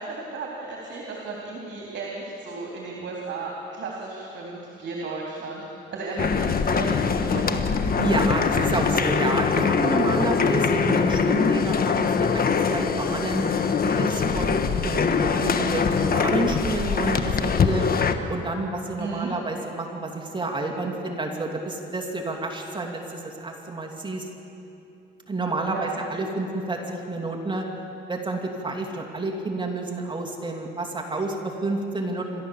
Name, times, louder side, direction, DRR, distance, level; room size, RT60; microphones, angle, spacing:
voice 1, 0.0-5.6 5.9-7.6 8.5-8.7 19.0-19.3 25.7-26.0, right 3 dB, 65° right, -2 dB, 3.4 m, -34 dB
sound 1, 6.2-18.1, left 5 dB, 50° left, 1.2 m, -23 dB
voice 2, 8.0-13.4 13.8-17.9 18.3-24.3 25.3-27.6 28.1-32.4, right 2 dB, 25° right, 1 dB, 2.6 m, -29 dB
27.5 x 13.5 x 7.3 m, 2.8 s
cardioid pair, 90°, 20 cm